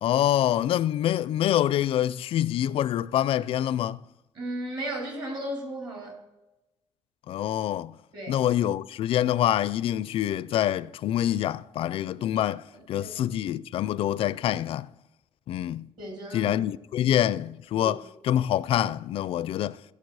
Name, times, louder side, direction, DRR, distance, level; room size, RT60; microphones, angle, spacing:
voice 1, 0.0-4.0 7.3-7.9 8.3-14.9 15.5-15.8 16.3-18.0 18.2-19.8, left 11 dB, 60° left, 0.4 m, -26 dB
voice 2, 4.3-6.1 8.1-8.4 12.7-13.1 16.0-16.6 17.0-17.1 17.8-17.9, right 1 dB, 45° right, 3.7 m, -35 dB
16.0 x 6.8 x 4.8 m
cardioid pair, 155°, 11 cm